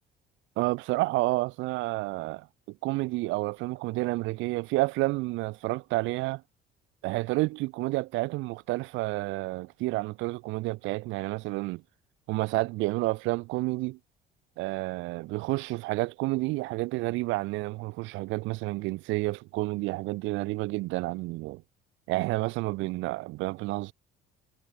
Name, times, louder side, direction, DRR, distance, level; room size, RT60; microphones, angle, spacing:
voice 1, 0.6-6.4 7.0-11.8 12.3-14.0 14.6-21.6 22.1-23.9, right 21 dB, 90° right, 2.0 m, -30 dB
cardioid pair, 165°, 19 cm